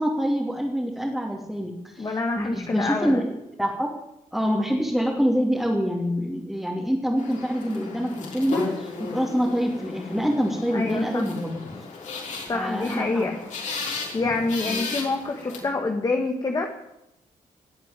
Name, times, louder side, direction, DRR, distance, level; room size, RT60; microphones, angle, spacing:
voice 1, 0.0-3.9 4.3-11.6 12.5-13.3 14.7-14.9, equal, ahead, -3 dB, 2.9 m, -26 dB
voice 2, 2.0-3.3 10.7-11.2 12.5-13.4 14.1-16.7, left 3 dB, 30° left, 3 dB, 1.7 m, -26 dB
sound 1, 7.2-15.6, left 4 dB, 60° left, 5.5 m, -34 dB
19.5 x 8.2 x 8.9 m, 0.87 s
cardioid pair, 130°, 14 cm